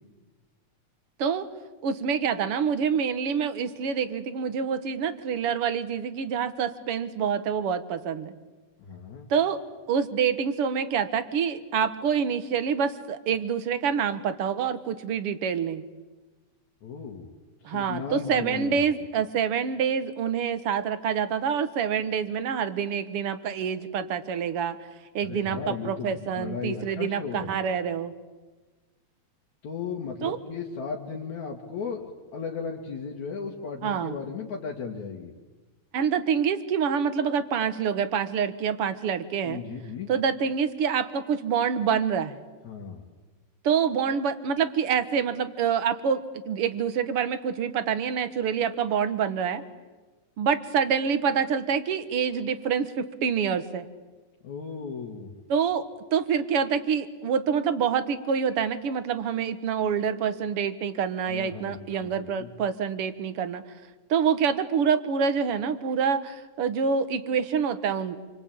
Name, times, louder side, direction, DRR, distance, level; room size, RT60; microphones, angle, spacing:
voice 1, 1.8-8.3 9.3-9.6 9.9-15.8 17.7-24.8 25.2-28.1 30.2-30.4 33.8-34.2 35.9-39.6 40.1-42.4 43.6-49.6 50.4-53.9 55.5-63.6 64.1-68.2, right 7 dB, 55° right, 12 dB, 2.1 m, -26 dB
voice 2, 8.8-9.3 16.8-17.3 17.6-18.9 25.2-27.5 29.6-35.3 39.4-40.1 42.6-43.0 54.4-55.3 61.3-62.5, left 6 dB, 75° left, -2 dB, 3.5 m, -36 dB
28.0 x 24.5 x 8.7 m, 1.2 s
omnidirectional pair, 3.3 m